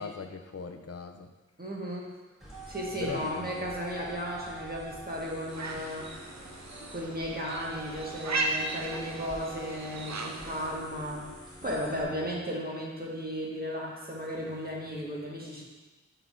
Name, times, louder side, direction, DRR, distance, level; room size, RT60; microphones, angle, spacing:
voice 1, 0.0-1.3 3.0-3.7 11.6-12.5, left 5 dB, 55° left, 6 dB, 0.5 m, -40 dB
voice 2, 1.6-2.1 2.7-6.2 6.9-11.3 11.6-15.6, equal, 30° right, -4 dB, 1.5 m, -35 dB
sound 1, 2.4-12.0, right 1 dB, ahead, 1.9 m, -46 dB
sound 2, 5.5-10.8, right 2 dB, 70° right, 0.6 m, -36 dB
8.0 x 5.4 x 2.6 m, 1.3 s
wide cardioid pair, 50°, 29 cm